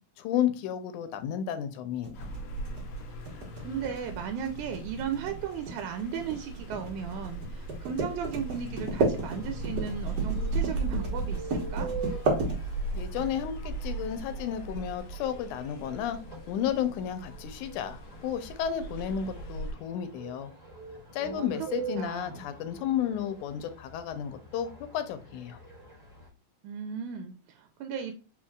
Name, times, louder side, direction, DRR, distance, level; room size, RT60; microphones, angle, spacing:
voice 1, 0.2-2.3 12.9-16.2 16.5-20.5 21.1-25.6, left 9 dB, 90° left, 10 dB, 2.2 m, -32 dB
sound 1, 2.0-13.1, right 2 dB, 45° right, 1.3 m, -32 dB
sound 2, 2.1-19.7, right 3 dB, 60° left, 1.6 m, -37 dB
voice 2, 3.6-11.9 21.2-21.5 22.0-22.4 26.6-28.1, right 7 dB, 85° right, 6 dB, 2.0 m, -36 dB
sound 3, 9.1-26.3, right 5 dB, 20° left, 2.0 m, -45 dB
4.5 x 4.4 x 2.3 m, 0.34 s
omnidirectional pair, 3.4 m